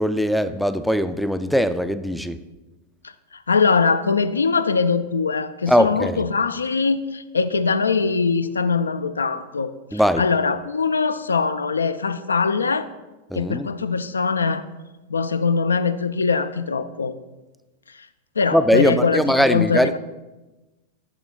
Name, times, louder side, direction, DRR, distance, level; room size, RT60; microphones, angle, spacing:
voice 1, 0.0-2.4 5.7-6.2 9.9-10.2 13.3-13.7 18.5-19.9, equal, ahead, 12 dB, 0.3 m, -20 dB
voice 2, 3.5-12.9 13.3-14.6 15.1-17.1 18.4-19.2 19.5-20.0, left 5 dB, 75° left, 12 dB, 0.3 m, -22 dB
8.6 x 6.2 x 2.3 m, 1.1 s
figure-of-eight pair, 90°, 0 cm